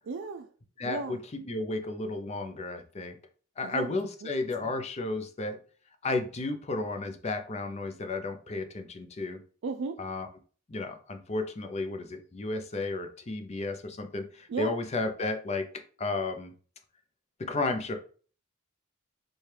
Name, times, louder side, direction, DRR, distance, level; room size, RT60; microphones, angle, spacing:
voice 1, 0.1-0.5 0.8-1.2 3.6-4.3 4.6-4.7 9.6-10.0 14.5-14.7, right 4 dB, 60° right, 6 dB, 0.3 m, -35 dB
voice 2, 0.8-3.2 3.6-5.6 6.0-9.4 10.0-10.3 10.7-15.7 16.0-16.5 17.4-18.0, left 2 dB, 30° left, 6 dB, 0.5 m, -33 dB
4.4 x 2.3 x 3.2 m, 0.40 s
head